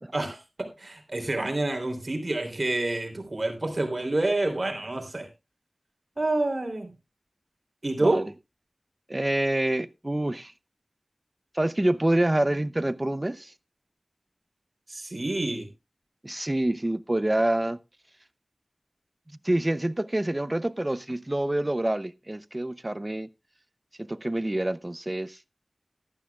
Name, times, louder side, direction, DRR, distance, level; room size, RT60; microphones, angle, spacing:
voice 1, 0.1-5.3 6.2-6.9 7.8-8.3 14.9-15.7, right 2 dB, 55° right, 3.3 m, -28 dB
voice 2, 8.0-8.3 9.1-10.5 11.5-13.5 16.2-17.8 19.4-23.3 24.0-25.4, right 1 dB, 30° right, 0.6 m, -27 dB
14.5 x 12.5 x 2.4 m
wide cardioid pair, 45°, 0 cm